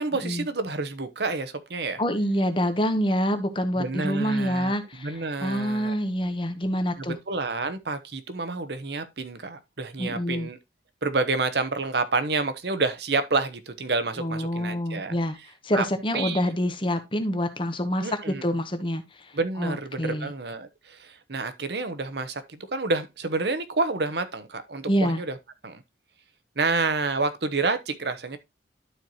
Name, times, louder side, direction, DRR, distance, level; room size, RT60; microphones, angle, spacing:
voice 1, 0.0-2.0 3.8-5.9 7.0-10.6 11.0-15.2 15.7-15.9 16.1-16.4 18.0-18.5 19.3-25.4 25.6-25.8 26.6-28.4, right 3 dB, 65° right, 1.0 m, -29 dB
voice 2, 2.0-7.2 10.0-10.5 14.2-15.4 15.6-20.3 24.9-25.2, equal, 25° left, 1.0 m, -27 dB
12.0 x 4.5 x 2.9 m
head